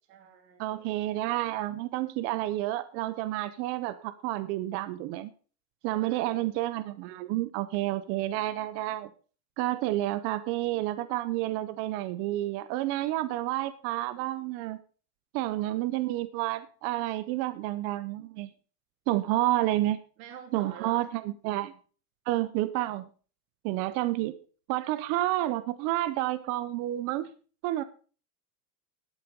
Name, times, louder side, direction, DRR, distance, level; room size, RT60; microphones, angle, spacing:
voice 1, 0.1-0.9 5.9-6.5 20.2-21.1, right 8 dB, 80° right, 3.3 m, -48 dB
voice 2, 0.6-5.3 5.8-9.1 9.6-14.8 15.3-18.5 19.1-20.0 20.5-21.7 22.3-23.1 23.6-24.4 24.7-27.3 27.6-27.8, right 16 dB, 30° right, 0.5 m, -30 dB
11.5 x 8.7 x 5.2 m
supercardioid pair, 160°, 50 cm